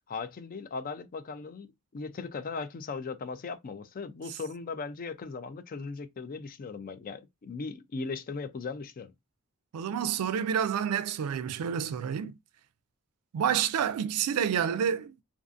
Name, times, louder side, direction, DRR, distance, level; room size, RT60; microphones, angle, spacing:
voice 1, 0.1-1.7 1.9-9.1, left 4 dB, 40° left, 0.4 m, -38 dB
voice 2, 9.7-12.4 13.3-15.2, right 8 dB, 85° right, 0.3 m, -29 dB
2.5 x 2.4 x 2.4 m
head